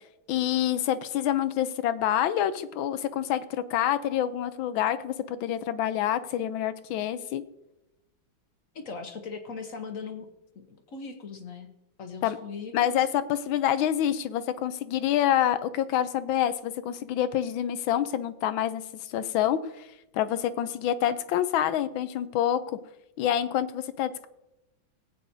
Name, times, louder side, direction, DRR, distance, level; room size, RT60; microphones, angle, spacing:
voice 1, 0.3-7.4 12.2-12.4 12.7-18.8 19.1-19.9 20.1-22.8 23.2-24.3, left 11 dB, 85° left, 13 dB, 1.4 m, -27 dB
voice 2, 8.7-10.3 10.5-11.7 12.0-13.1, left 5 dB, 50° left, 6 dB, 1.1 m, -39 dB
18.5 x 8.5 x 2.7 m, 0.91 s
omnidirectional pair, 2.1 m